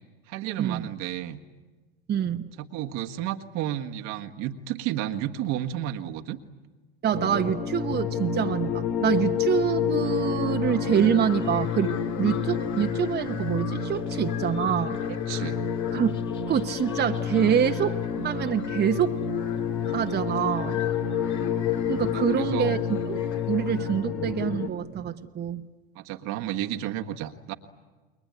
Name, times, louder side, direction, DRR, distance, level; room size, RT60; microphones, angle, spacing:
voice 1, 0.3-1.4 2.6-6.4 15.1-15.6 20.4-20.5 22.1-22.8 25.9-27.5, right 12 dB, 65° right, 6 dB, 1.6 m, -32 dB
voice 2, 2.1-2.5 7.0-15.0 15.9-16.2 16.5-19.2 19.9-20.8 21.9-22.8 23.1-23.2 23.5-25.7, right 9 dB, 35° right, 6 dB, 1.1 m, -26 dB
sound 1, 7.1-24.7, left 7 dB, 75° left, 2.2 m, -29 dB
sound 2, 10.0-23.9, left 8 dB, 40° left, 3.4 m, -45 dB
29.0 x 21.5 x 9.5 m, 1.3 s
hypercardioid pair, 85°, 29 cm